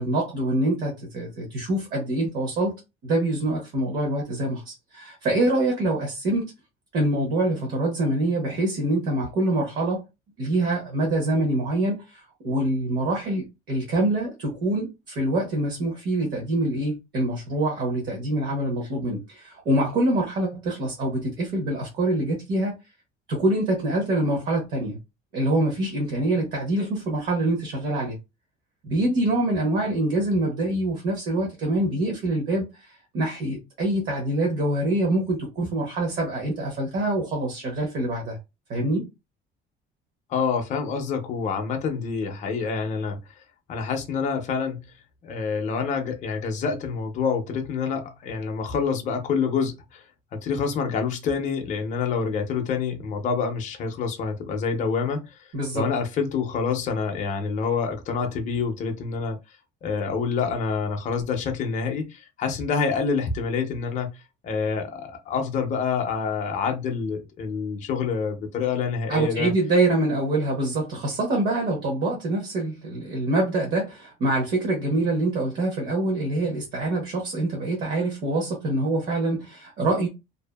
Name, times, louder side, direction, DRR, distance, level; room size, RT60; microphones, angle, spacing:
voice 1, 0.0-6.5 6.9-10.0 10.4-22.8 23.3-25.0 25.3-28.2 28.8-38.4 38.7-39.1 55.5-55.8 69.1-80.1, right 1 dB, 50° right, 0.9 m, -25 dB
voice 2, 40.3-43.2 43.7-44.8 45.2-50.0 50.3-55.2 55.7-59.4 59.8-64.1 64.4-69.5, left 5 dB, 35° left, 0.5 m, -27 dB
2.6 x 2.4 x 2.2 m
cardioid pair, 175°, 21 cm